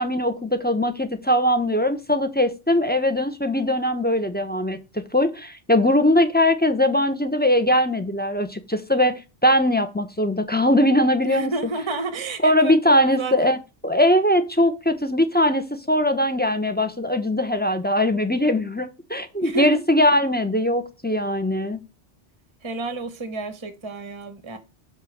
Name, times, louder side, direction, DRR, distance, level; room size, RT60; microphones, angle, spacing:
voice 1, 0.0-11.5 12.4-13.6 13.8-21.8, left 1 dB, 10° left, 0.7 m, -21 dB
voice 2, 11.2-13.6 19.4-19.8 22.6-24.6, right 3 dB, 25° right, 0.9 m, -30 dB
6.3 x 6.2 x 6.4 m
omnidirectional pair, 1.1 m